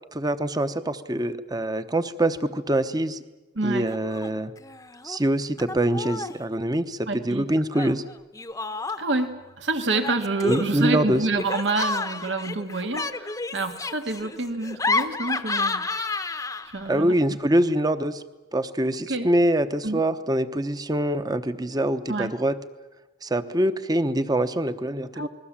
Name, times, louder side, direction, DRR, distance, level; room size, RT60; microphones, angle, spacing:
voice 1, 0.1-3.2 3.6-4.5 5.0-8.0 10.4-11.2 16.9-18.2 18.5-22.6 23.2-25.3, right 1 dB, 20° right, 11 dB, 1.0 m, -24 dB
voice 2, 3.6-3.9 7.1-7.5 9.0-15.9 16.7-17.4 19.1-19.3 19.8-20.0 22.1-22.3 25.2-25.3, right 2 dB, 75° right, 7 dB, 1.9 m, -28 dB
Laughter, 3.9-4.3 4.6-5.2 5.6-6.4 7.7-9.3 9.9-16.9, left 3 dB, 20° left, 0.9 m, -30 dB
29.0 x 21.0 x 7.4 m, 1.1 s
head